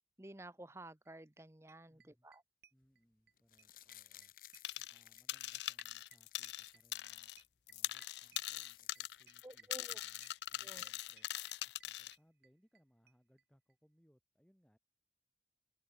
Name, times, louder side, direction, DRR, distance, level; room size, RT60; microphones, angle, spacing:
voice 1, 0.2-2.4 9.4-10.0 10.6-10.8, right 1 dB, 15° right, 0.9 m, -53 dB
sound 1, 1.1-1.2 1.4-1.5 1.7-3.3 3.6-12.8 13.1-13.2 13.4-13.5 13.7-13.8, right 8 dB, 65° right, 1.2 m, -65 dB
voice 2, 1.9-2.3 2.7-4.3 4.9-7.3 7.7-11.3 11.6-14.8, equal, 5° left, 6.8 m, -73 dB
sound 2, 3.4-7.1 7.5-7.6 7.7-9.6 10.0-10.1, left 14 dB, 50° left, 0.8 m, -60 dB
sound 3, 4.6-5.0 5.3-7.4 7.7-12.1, left 14 dB, 70° left, 0.4 m, -42 dB
open air
head